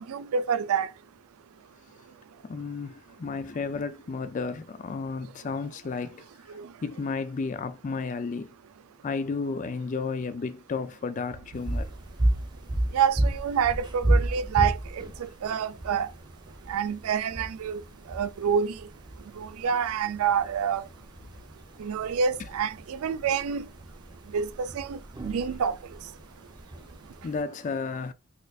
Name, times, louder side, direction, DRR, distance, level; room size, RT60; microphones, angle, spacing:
voice 1, 0.1-0.9 6.6-6.7 12.9-16.1 16.7-17.8 18.1-18.7 19.4-20.8 21.8-23.6 24.3-25.8, right 7 dB, 80° right, 0.4 m, -27 dB
voice 2, 2.4-6.3 6.8-8.5 9.0-11.9 27.2-28.1, left 4 dB, 35° left, 0.3 m, -32 dB
sound 1, 11.5-27.4, right 1 dB, 20° right, 0.6 m, -32 dB
4.2 x 2.5 x 2.3 m
head